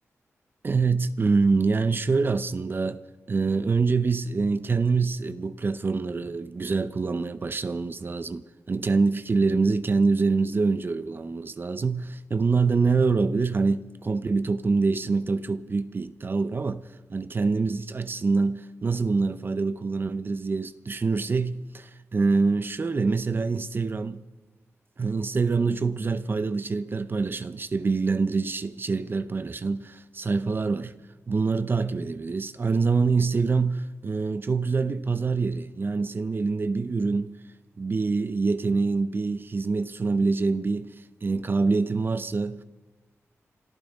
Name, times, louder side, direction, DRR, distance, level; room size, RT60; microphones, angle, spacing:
voice 1, 0.6-3.0 3.3-24.3 25.0-30.9 31.3-37.4 37.8-40.9 41.2-42.6, right 4 dB, 40° right, 0.6 m, -25 dB
26.5 x 14.0 x 3.6 m
wide cardioid pair, 95°, 5 cm